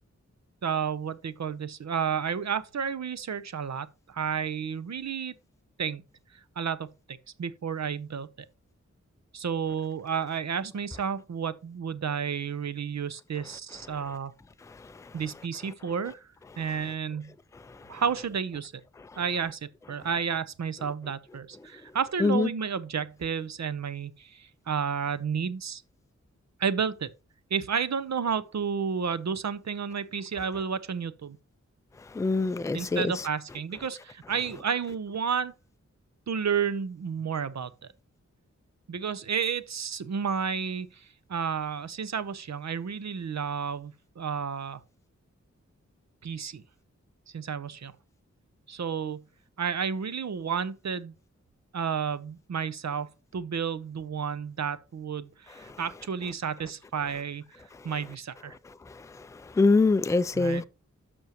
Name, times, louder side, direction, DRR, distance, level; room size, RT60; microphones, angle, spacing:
voice 1, 0.6-5.3 5.8-6.0 6.6-8.3 9.3-14.3 15.1-16.3 16.6-17.3 17.9-18.7 19.2-19.6 19.9-25.8 26.6-27.1 27.5-31.4 32.7-35.5 36.3-37.7 38.9-44.8 46.2-46.6 47.3-47.9 48.7-49.2 49.6-51.1 51.7-57.4 57.8-58.5 60.4-60.6, right 6 dB, 70° right, 0.7 m, -31 dB
voice 2, 32.1-33.1 58.9-60.6, left 3 dB, 10° left, 0.3 m, -24 dB
10.5 x 6.2 x 2.9 m
wide cardioid pair, 100°, 29 cm